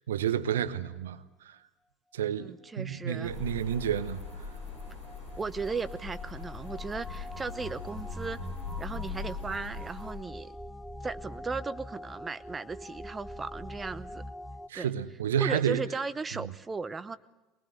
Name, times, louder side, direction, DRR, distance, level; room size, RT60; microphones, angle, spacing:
voice 1, 0.1-1.2 2.1-4.2 14.7-15.8, right 9 dB, 75° right, 0.9 m, -30 dB
voice 2, 2.3-3.3 5.4-8.4 8.8-10.5 11.0-14.2 14.7-14.9 15.4-17.2, right 4 dB, 20° right, 0.9 m, -36 dB
sound 1, 3.2-10.1, left 5 dB, 85° left, 7.4 m, -41 dB
sound 2, 3.5-14.7, equal, ahead, 1.1 m, -44 dB
23.0 x 19.5 x 7.9 m
figure-of-eight pair, 65°, 0 cm